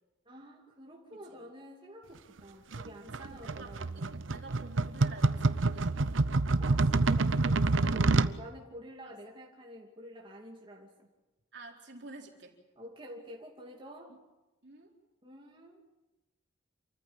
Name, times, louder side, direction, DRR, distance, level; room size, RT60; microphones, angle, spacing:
voice 1, 0.3-4.3 6.6-11.1 12.8-14.1 15.2-15.8, equal, 25° right, -2 dB, 2.6 m, -49 dB
sound 1, 2.7-8.3, right 3 dB, 85° right, 0.8 m, -27 dB
voice 2, 3.0-4.1 4.3-6.2 11.5-12.6 14.1-14.2 14.6-14.9, right 2 dB, 65° right, 1 dB, 4.1 m, -50 dB
28.0 x 14.5 x 8.8 m, 1.1 s
head